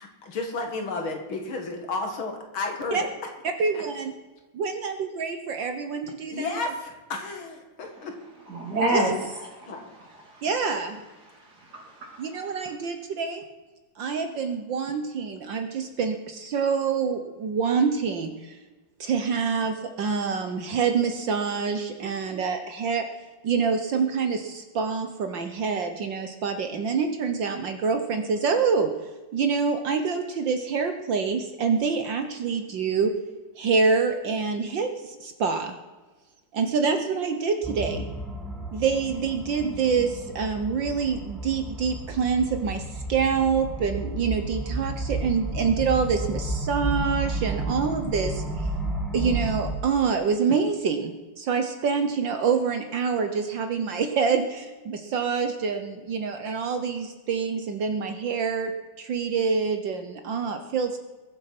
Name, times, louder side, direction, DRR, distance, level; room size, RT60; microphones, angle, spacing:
voice 1, 0.0-3.1 3.7-3.8 6.3-8.1 9.7-9.8, left 3 dB, 65° left, 3 dB, 2.8 m, -32 dB
voice 2, 3.6-4.1 4.5-6.5 8.9-9.0 10.4-11.0 12.2-13.4 14.0-18.6 19.0-23.1 23.4-28.9 29.3-33.1 33.6-35.7 36.5-38.1 38.7-42.8 43.1-48.4 49.1-61.0, right 5 dB, 60° right, 7 dB, 1.7 m, -26 dB
voice 3, 8.5-9.1 9.5-9.8 10.2-10.5 11.3-12.6, right 1 dB, 45° right, 0 dB, 3.6 m, -29 dB
sound 1, 37.6-49.7, right 2 dB, ahead, 1.8 m, -32 dB
21.5 x 7.7 x 5.9 m, 1.2 s
omnidirectional pair, 2.4 m